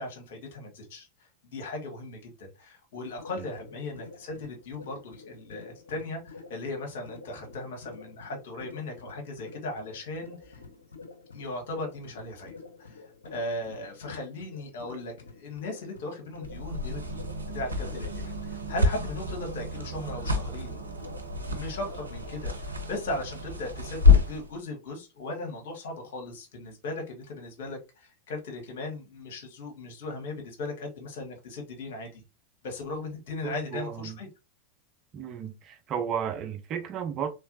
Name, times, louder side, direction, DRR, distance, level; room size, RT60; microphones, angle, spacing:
voice 1, 0.0-10.6 11.3-17.3 17.5-20.8 21.5-32.2 32.6-34.3, left 2 dB, 60° left, 1.6 m, -38 dB
sound 1, 2.9-22.4, left 4 dB, 80° left, 0.7 m, -48 dB
sound 2, 16.4-24.5, left 4 dB, 90° right, 0.7 m, -27 dB
voice 2, 33.4-34.2 35.1-37.3, right 8 dB, 40° right, 0.7 m, -33 dB
3.3 x 3.3 x 2.6 m
figure-of-eight pair, 90°, 0 cm